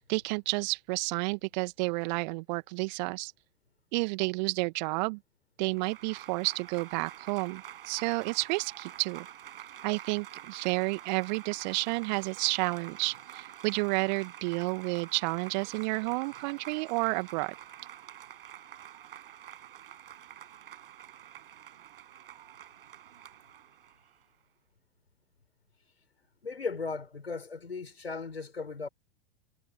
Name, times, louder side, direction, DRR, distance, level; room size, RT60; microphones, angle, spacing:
voice 1, 0.0-3.3 3.9-5.2 5.6-9.3 9.8-17.5, right 27 dB, 45° right, 2.0 m, -31 dB
Applause / Crowd, 5.7-24.2, right 11 dB, 65° right, 6.1 m, -48 dB
voice 2, 26.4-28.9, left 4 dB, 80° left, 6.2 m, -37 dB
figure-of-eight pair, 95°, 31 cm